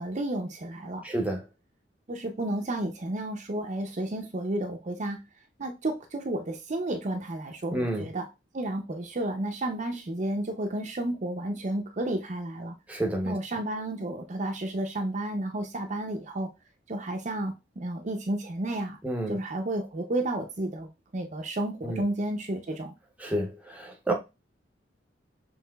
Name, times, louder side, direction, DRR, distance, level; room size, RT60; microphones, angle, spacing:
voice 1, 0.0-1.0 2.1-5.2 5.6-8.3 8.5-12.8 13.2-16.5 16.9-19.0 19.3-22.9, right 1 dB, 40° right, 0.6 m, -32 dB
voice 2, 1.0-1.4 7.7-8.1 12.9-13.4 19.0-19.3 21.8-22.0 23.2-24.1, right 1 dB, 10° right, 0.7 m, -29 dB
5.6 x 3.0 x 2.3 m
head